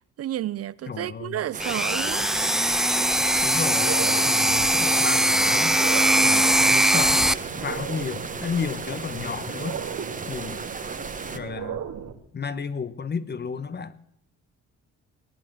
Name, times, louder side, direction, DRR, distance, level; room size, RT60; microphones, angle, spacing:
voice 1, 0.2-2.3, right 12 dB, 55° right, 0.5 m, -31 dB
voice 2, 0.9-1.4 3.4-5.8 6.2-9.8 10.3-10.7 11.3-11.8 12.3-14.0, left 5 dB, 35° left, 1.1 m, -32 dB
sound 1, 1.5-11.4, right 4 dB, 25° right, 1.3 m, -36 dB
sound 2, 1.6-7.3, right 1 dB, ahead, 0.6 m, -21 dB
sound 3, 3.3-12.1, right 8 dB, 75° right, 2.3 m, -37 dB
19.5 x 9.0 x 7.9 m
cardioid pair, 90°, 30 cm